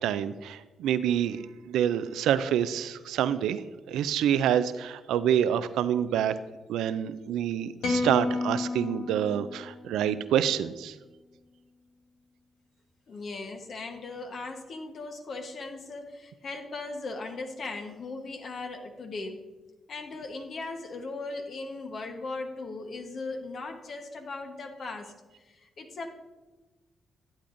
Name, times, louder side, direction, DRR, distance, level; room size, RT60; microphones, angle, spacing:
voice 1, 0.0-3.6 3.9-6.3 6.7-11.0, right 10 dB, 85° right, 13 dB, 0.4 m, -27 dB
sound 1, 7.8-10.2, left 3 dB, 80° left, 1.1 m, -31 dB
voice 2, 13.1-19.4 19.9-25.1 25.4-26.1, left 3 dB, 60° left, 4 dB, 1.1 m, -38 dB
12.0 x 8.4 x 2.6 m, 1.2 s
supercardioid pair, 60°, 0 cm